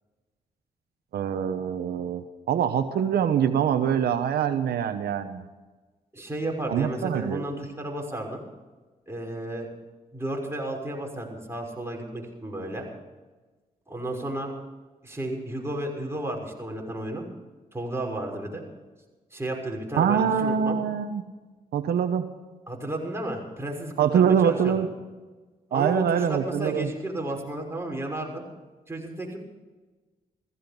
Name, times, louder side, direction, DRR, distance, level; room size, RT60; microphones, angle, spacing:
voice 1, 1.1-5.4 6.7-7.4 20.0-21.2 21.7-22.3 24.0-24.9 25.7-26.9, right 8 dB, 80° right, 8 dB, 1.0 m, -24 dB
voice 2, 6.1-8.4 9.1-9.7 10.1-12.8 13.9-14.5 15.0-17.2 17.7-18.6 19.3-20.8 22.7-24.8 25.7-28.4 28.9-29.4, right 1 dB, 15° right, 0 dB, 6.1 m, -32 dB
16.5 x 15.5 x 5.3 m, 1.3 s
supercardioid pair, 55°, 16 cm